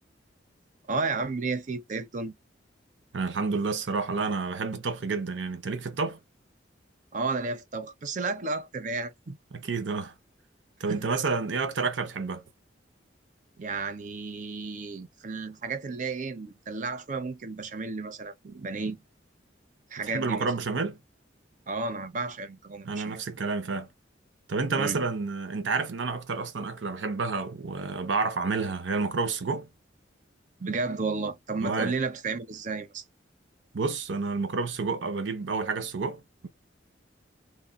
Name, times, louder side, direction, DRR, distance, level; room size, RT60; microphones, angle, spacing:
voice 1, 0.9-2.3 7.1-9.4 10.9-11.0 13.6-19.0 19.9-20.5 21.7-23.2 24.7-25.0 30.6-33.0, right 3 dB, 40° right, 0.6 m, -32 dB
voice 2, 3.1-6.2 9.5-10.1 10.8-12.4 20.0-21.0 22.8-23.9 24.5-29.7 31.6-32.0 33.7-36.5, right 4 dB, 80° right, 0.7 m, -29 dB
3.1 x 2.1 x 2.3 m
head